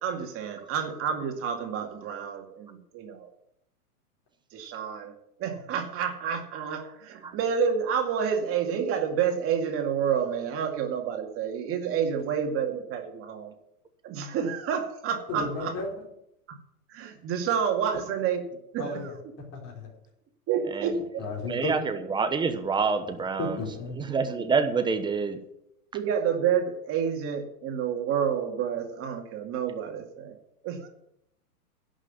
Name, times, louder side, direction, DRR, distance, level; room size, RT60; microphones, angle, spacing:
voice 1, 0.0-3.3 4.5-5.1 5.4-13.5 14.0-15.7 16.5-16.6 16.9-19.1 20.5-21.2 25.9-30.3 30.6-30.9, right 7 dB, 30° right, 3 dB, 2.2 m, -29 dB
voice 2, 15.3-15.9 18.8-19.2 19.5-19.9 21.2-21.7 23.4-24.0, left 2 dB, 30° left, -2 dB, 4.5 m, -33 dB
voice 3, 21.5-23.6 24.0-25.4, right 5 dB, 10° right, 8 dB, 1.0 m, -27 dB
11.0 x 6.3 x 9.3 m, 0.79 s
hypercardioid pair, 135°, 46 cm